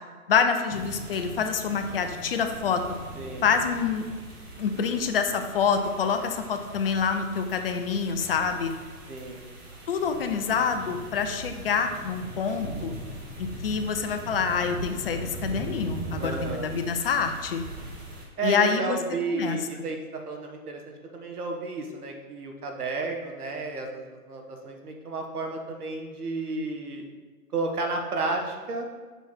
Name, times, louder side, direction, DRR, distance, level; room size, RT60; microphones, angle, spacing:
voice 1, 0.3-2.8 3.4-4.1 4.6-8.7 9.9-12.9 13.4-17.6 18.4-19.0 19.3-19.6, left 6 dB, 40° left, 7 dB, 0.6 m, -26 dB
sound 1, 0.7-18.2, right 2 dB, 20° right, 1.4 m, -40 dB
voice 2, 3.2-3.5 9.1-9.5 16.2-16.7 18.4-20.8 21.1-27.0 27.5-28.9, right 3 dB, 80° right, 3 dB, 1.6 m, -32 dB
7.1 x 5.6 x 4.4 m, 1.4 s
hypercardioid pair, 145°, 45 cm